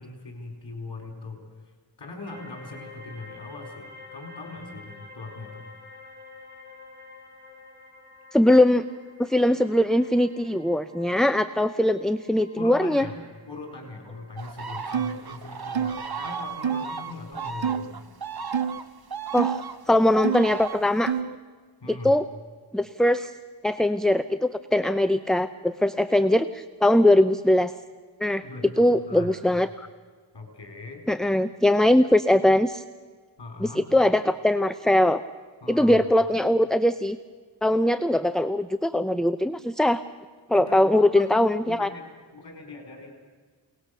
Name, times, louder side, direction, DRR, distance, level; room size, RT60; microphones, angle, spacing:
voice 1, 0.0-1.4 2.0-5.6 12.6-13.1 13.5-18.0 21.8-22.2 28.4-29.6 30.3-31.0 33.4-33.8 35.6-36.0 40.5-42.0 42.3-43.1, left 3 dB, 60° left, 2 dB, 4.8 m, -40 dB
sound 1, 2.3-17.9, left 3 dB, 25° right, 4.0 m, -50 dB
voice 2, 8.3-8.8 9.2-13.1 19.3-19.6 19.9-21.1 22.0-22.3 22.7-23.3 23.6-27.7 28.2-28.4 28.8-29.9 31.1-32.8 33.6-35.2 35.7-37.2 37.6-40.0 40.5-41.9, left 1 dB, ahead, 10 dB, 0.6 m, -21 dB
sound 2, 14.4-21.1, right 6 dB, 55° right, 1.2 m, -35 dB
sound 3, 14.9-15.2 15.7-16.0 16.6-16.8 17.6-17.9 18.5-18.8 19.4-19.6 20.2-20.5 21.1-21.4, right 7 dB, 80° right, 0.9 m, -27 dB
29.0 x 19.0 x 6.7 m, 1.6 s
wide cardioid pair, 85°, 45 cm